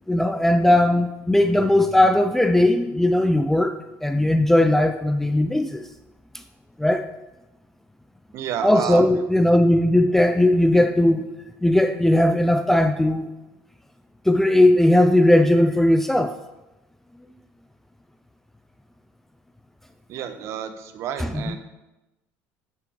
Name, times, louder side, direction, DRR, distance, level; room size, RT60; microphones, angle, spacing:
voice 1, 0.1-5.9 6.8-7.1 8.6-11.3 11.6-13.3 14.3-16.4 21.2-21.6, left 1 dB, 5° left, 0.3 m, -18 dB
voice 2, 8.3-9.0 20.1-21.6, right 9 dB, 55° right, 0.7 m, -30 dB
7.0 x 5.9 x 4.6 m
cardioid pair, 140°, 6 cm